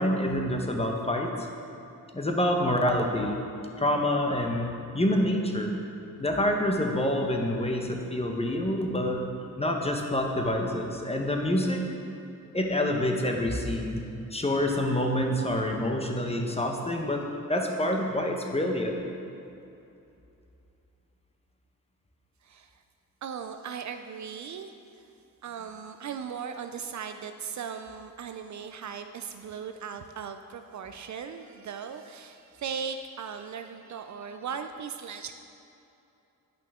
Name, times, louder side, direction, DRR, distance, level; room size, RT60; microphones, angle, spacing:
voice 1, 0.0-1.5 2.1-3.4 3.8-5.7 6.2-9.2 9.6-11.8 12.5-17.2 17.5-19.1, left 1 dB, 15° left, 2 dB, 0.9 m, -27 dB
voice 2, 22.4-22.8 23.2-25.1 25.4-35.3, right 7 dB, 55° right, 7 dB, 0.4 m, -38 dB
8.8 x 5.6 x 3.6 m, 2.7 s
cardioid pair, 70°, 36 cm